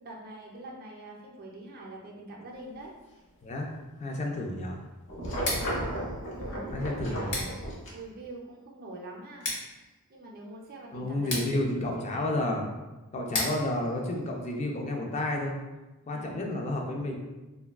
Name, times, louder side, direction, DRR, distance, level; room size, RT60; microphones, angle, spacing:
voice 1, 0.0-2.9 5.7-7.6 7.9-9.5 10.1-11.7 12.0-12.6 16.0-16.5, right 2 dB, 40° right, -2 dB, 0.5 m, -44 dB
voice 2, 4.0-4.8 6.7-7.4 10.9-12.6 13.1-15.6 16.1-17.2, left 1 dB, 30° left, 1 dB, 0.4 m, -31 dB
sound 1, 5.1-7.9, equal, 60° left, 0.8 m, -34 dB
Scissors, 5.3-15.1, left 2 dB, 85° left, 1.1 m, -39 dB
3.3 x 2.2 x 2.3 m, 1.1 s
head